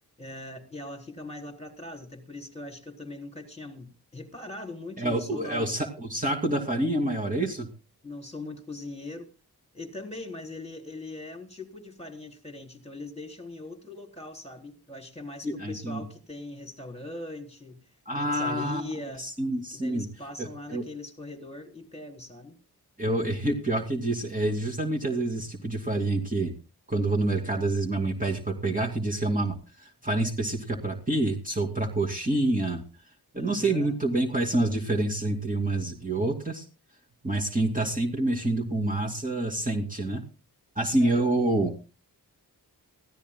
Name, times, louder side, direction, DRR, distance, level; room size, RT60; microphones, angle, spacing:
voice 1, 0.2-5.8 8.0-9.3 9.7-17.8 18.2-19.2 19.7-22.5 33.4-33.9 41.0-41.3, left 2 dB, 15° left, 2 dB, 3.9 m, -40 dB
voice 2, 5.0-7.7 15.4-16.0 18.1-18.8 19.2-20.1 20.4-20.8 23.0-26.5 26.9-32.8 33.3-36.6 37.2-40.2 40.8-41.8, right 2 dB, 20° right, 0 dB, 2.5 m, -27 dB
23.0 x 16.0 x 2.2 m, 0.34 s
wide cardioid pair, 85°, 40 cm